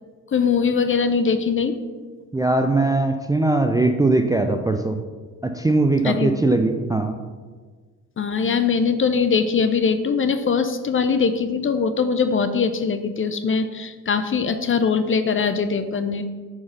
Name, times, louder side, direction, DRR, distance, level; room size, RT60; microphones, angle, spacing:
voice 1, 0.3-1.8 6.0-6.3 8.2-16.2, left 5 dB, 25° left, 10 dB, 0.7 m, -21 dB
voice 2, 2.3-5.0 5.4-7.2, right 2 dB, 10° right, 4 dB, 0.5 m, -20 dB
9.8 x 4.8 x 5.7 m, 1.5 s
figure-of-eight pair, 50°, 49 cm